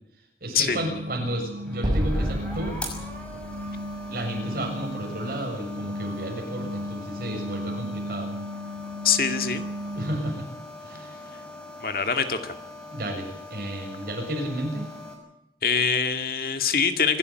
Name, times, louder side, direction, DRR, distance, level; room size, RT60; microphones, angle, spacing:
voice 1, 0.4-2.8 4.1-8.4 10.0-10.5 10.8-11.1 12.9-14.9, right 1 dB, 55° right, 1 dB, 7.3 m, -32 dB
sound 1, 0.7-10.4, equal, 70° right, 2.9 m, -36 dB
sound 2, 1.6-15.1, left 1 dB, 5° left, 5.9 m, -42 dB
Explosion, 1.8-5.1, equal, 25° right, 1.2 m, -30 dB
voice 2, 9.0-9.6 11.8-12.6 15.6-17.2, left 6 dB, 55° left, 7 dB, 2.2 m, -24 dB
26.0 x 12.5 x 9.4 m, 0.84 s
head